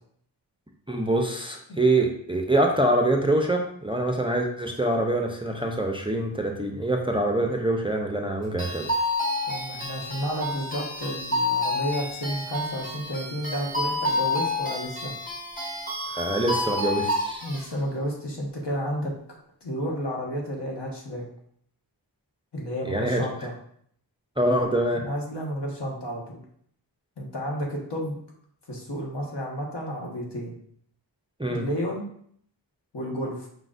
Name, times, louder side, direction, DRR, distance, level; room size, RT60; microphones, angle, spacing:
voice 1, 0.9-8.9 16.1-17.5 22.9-23.2 24.4-25.0 31.4-31.7, right 1 dB, 10° right, 2 dB, 0.5 m, -25 dB
sound 1, 8.6-17.7, left 2 dB, 20° left, 1.4 m, -29 dB
voice 2, 9.4-15.1 17.4-19.1 19.6-21.2 22.5-23.5 24.9-26.4 27.2-28.2 28.7-30.6 31.5-32.1 32.9-33.5, equal, 65° left, -1 dB, 1.3 m, -31 dB
5.1 x 3.8 x 2.5 m, 0.64 s
wide cardioid pair, 60°, 44 cm